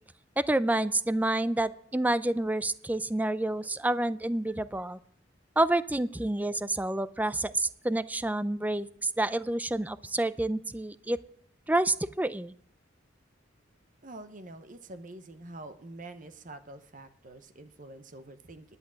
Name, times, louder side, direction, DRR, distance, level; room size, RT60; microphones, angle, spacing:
voice 1, 0.4-5.0 5.6-11.2 11.7-12.5, right 1 dB, 10° right, 16 dB, 0.4 m, -28 dB
voice 2, 14.0-18.8, right 2 dB, 45° right, 9 dB, 1.0 m, -46 dB
11.0 x 8.1 x 7.5 m, 0.65 s
head